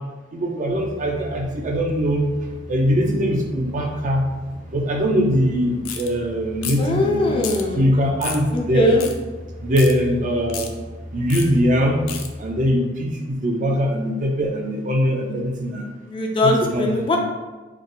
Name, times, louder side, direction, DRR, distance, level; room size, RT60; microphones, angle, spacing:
voice 1, 0.3-2.2 2.7-4.3 4.7-7.3 7.7-8.9 9.6-10.7 11.1-12.0 12.4-15.9 16.4-17.2, equal, 40° right, 1 dB, 0.5 m, -21 dB
sound 1, 0.7-12.7, equal, 65° left, 0.7 m, -38 dB
sound 2, 5.8-6.1 6.6-6.9 7.4-7.6 8.2-8.4 9.0-9.1 9.8-9.9 10.5-10.7 11.3-11.5 12.1-12.3, left 8 dB, 90° left, 0.4 m, -31 dB
voice 2, 6.8-7.8 8.5-9.0 16.1-17.2, left 1 dB, 25° left, 1 dB, 0.4 m, -20 dB
3.5 x 2.2 x 3.8 m, 1.2 s
head